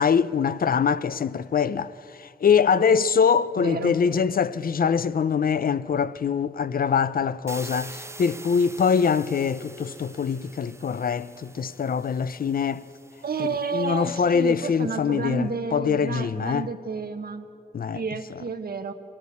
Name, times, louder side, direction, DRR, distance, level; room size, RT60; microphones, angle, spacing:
voice 1, 0.0-12.8 13.4-16.7 17.7-18.0, left 6 dB, 65° left, 0.6 m, -23 dB
voice 2, 3.6-4.0 13.2-17.4 17.9-18.9, right 4 dB, 70° right, 1.2 m, -30 dB
sound 1, 7.5-14.3, right 2 dB, 15° right, 0.5 m, -45 dB
23.5 x 17.5 x 8.5 m
wide cardioid pair, 150°, 16 cm